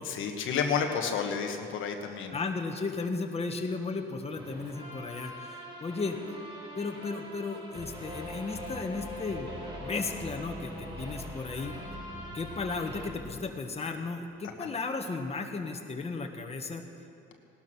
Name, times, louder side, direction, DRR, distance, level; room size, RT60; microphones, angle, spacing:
voice 1, 0.0-2.4 14.6-14.7, left 6 dB, 80° left, 4 dB, 1.4 m, -31 dB
voice 2, 2.3-5.5 5.8-6.2 6.7-9.6 9.8-11.8 12.3-16.9, left 4 dB, 30° left, 3 dB, 1.5 m, -35 dB
sound 1, 4.3-13.1, equal, 25° right, 4.2 m, -42 dB
18.0 x 12.5 x 6.1 m, 2.7 s
cardioid pair, 90°, 20 cm